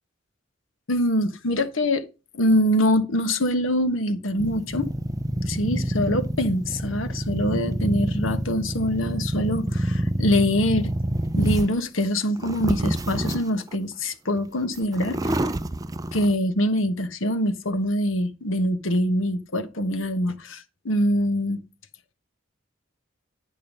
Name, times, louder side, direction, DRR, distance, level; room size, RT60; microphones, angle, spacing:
voice 1, 0.9-2.0 2.3-4.9 5.5-10.9 11.4-15.5 16.1-21.6, equal, 80° left, 1.3 m, -24 dB
sound 1, 4.4-11.8 12.3-13.7 14.4-14.5 14.7-16.3, right 1 dB, 20° right, 0.4 m, -27 dB
10.5 x 5.4 x 5.3 m
head